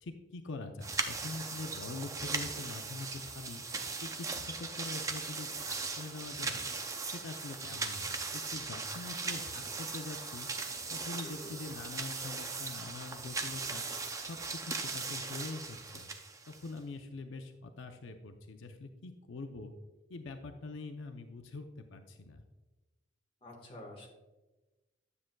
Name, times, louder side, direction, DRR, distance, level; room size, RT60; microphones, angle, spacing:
voice 1, 0.0-3.6 4.0-10.5 10.9-13.9 14.2-16.1 16.5-19.7 20.1-22.4, left 3 dB, 85° left, 6 dB, 0.5 m, -44 dB
sound 1, 0.8-16.8, right 4 dB, 15° right, 0.4 m, -39 dB
voice 2, 23.4-24.1, left 1 dB, 30° left, -1 dB, 1.4 m, -48 dB
9.7 x 7.6 x 2.2 m, 1.1 s
head